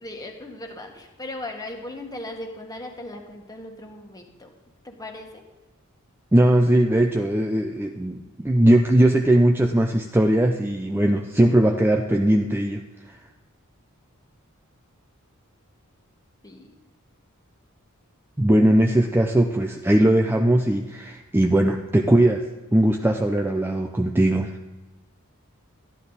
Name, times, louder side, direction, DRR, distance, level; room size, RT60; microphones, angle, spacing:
voice 1, 0.0-4.5 4.8-5.4 11.4-11.6 16.4-16.7, left 2 dB, 15° left, 2 dB, 1.5 m, -37 dB
voice 2, 6.3-12.8 18.4-22.4 22.7-24.5, right 1 dB, 10° right, 3 dB, 0.5 m, -19 dB
12.0 x 11.5 x 4.0 m, 1.2 s
head